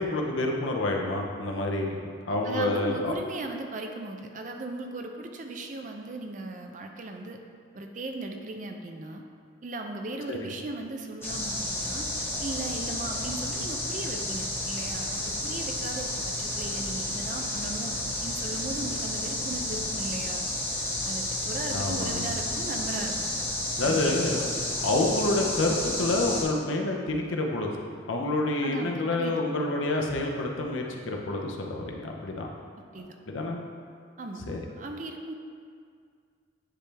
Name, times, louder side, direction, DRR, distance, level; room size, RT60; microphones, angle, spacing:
voice 1, 0.0-2.0 2.3-3.2 10.3-10.5 21.7-22.2 23.8-24.5 24.7-32.5 33.3-33.6 34.5-34.6, left 2 dB, 90° left, 0 dB, 0.8 m, -28 dB
voice 2, 2.4-7.4 7.7-9.2 9.6-20.4 21.0-23.4 23.8-24.2 28.6-29.4 32.9-33.2 34.2-34.4 34.8-35.3, right 2 dB, 40° right, 4 dB, 0.5 m, -37 dB
sound 1, 11.2-26.4, left 1 dB, 10° left, 1.1 m, -31 dB
9.7 x 3.4 x 3.4 m, 2.2 s
head